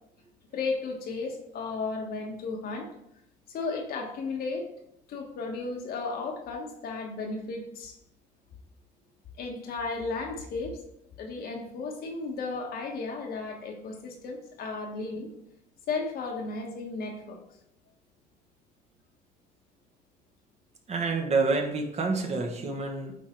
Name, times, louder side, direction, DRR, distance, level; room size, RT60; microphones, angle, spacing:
voice 1, 0.5-2.9 3.5-4.7 5.1-8.0 9.4-10.8 11.2-15.3 15.9-17.4, left 3 dB, 65° left, 2 dB, 1.4 m, -34 dB
voice 2, 20.9-23.1, right 3 dB, 40° right, 2 dB, 1.5 m, -28 dB
8.2 x 3.9 x 4.5 m, 0.78 s
cardioid pair, 110°, 17 cm